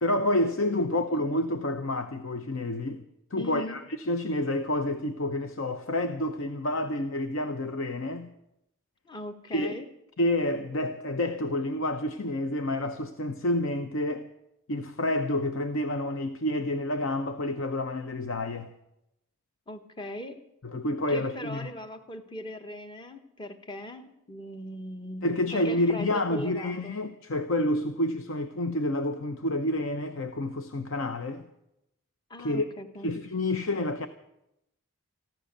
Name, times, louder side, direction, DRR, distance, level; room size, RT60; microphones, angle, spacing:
voice 1, 0.0-3.0 3.3-8.3 9.5-9.8 10.2-14.3 14.7-18.7 20.6-21.7 25.2-31.5 32.4-32.7 33.0-34.1, left 1 dB, 65° left, 0.8 m, -29 dB
voice 2, 3.4-3.8 9.0-9.9 19.7-20.4 21.1-25.2 25.5-27.0 32.3-33.1, equal, 20° left, 1.0 m, -39 dB
15.0 x 13.0 x 6.7 m
head